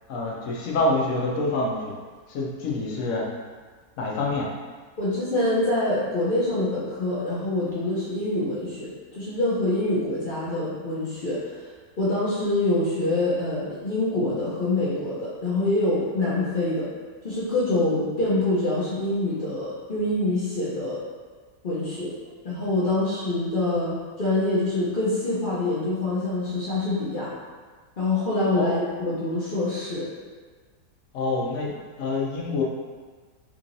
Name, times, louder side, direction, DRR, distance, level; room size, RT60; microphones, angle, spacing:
voice 1, 0.1-1.9 2.3-3.3 4.0-4.5 28.6-28.8 31.1-32.6, left 2 dB, 65° left, -3 dB, 1.0 m, -26 dB
voice 2, 5.0-11.5 12.0-16.9 17.2-21.0 21.6-22.1 22.4-27.3 28.0-30.1, left 2 dB, 45° left, -9 dB, 0.7 m, -25 dB
3.7 x 3.0 x 2.6 m, 1.5 s
omnidirectional pair, 1.7 m